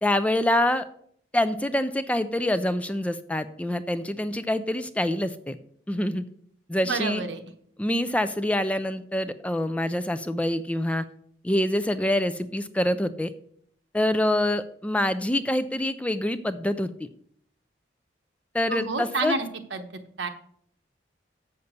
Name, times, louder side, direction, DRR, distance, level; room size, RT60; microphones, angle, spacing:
voice 1, 0.0-0.9 1.3-5.6 5.9-6.2 6.7-7.2 7.8-11.0 11.4-13.3 13.9-17.1 18.5-19.4, left 1 dB, 5° left, 11 dB, 0.3 m, -26 dB
voice 2, 6.8-7.4 18.7-19.9 20.2-20.3, right 3 dB, 80° right, 6 dB, 1.1 m, -29 dB
6.9 x 6.8 x 6.5 m, 0.66 s
head